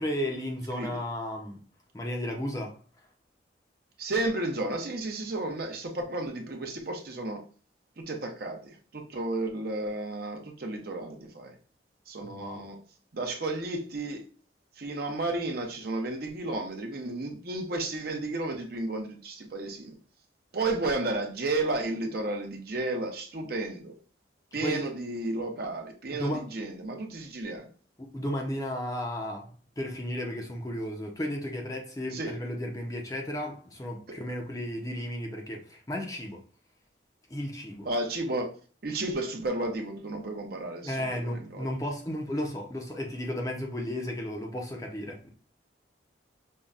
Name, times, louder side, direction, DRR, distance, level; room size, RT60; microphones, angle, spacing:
voice 1, 0.0-1.6 1.9-2.8 12.2-12.7 24.5-24.9 26.1-26.5 28.0-29.5 29.8-36.4 37.3-37.9 40.8-45.3, equal, 20° left, 0.5 m, -34 dB
voice 2, 4.0-7.4 8.0-11.5 12.1-12.8 13.1-14.2 14.8-19.9 20.5-23.9 24.5-27.7 32.1-32.3 37.8-38.5 38.8-41.7, right 2 dB, 50° right, 0.7 m, -32 dB
5.3 x 2.2 x 2.4 m
head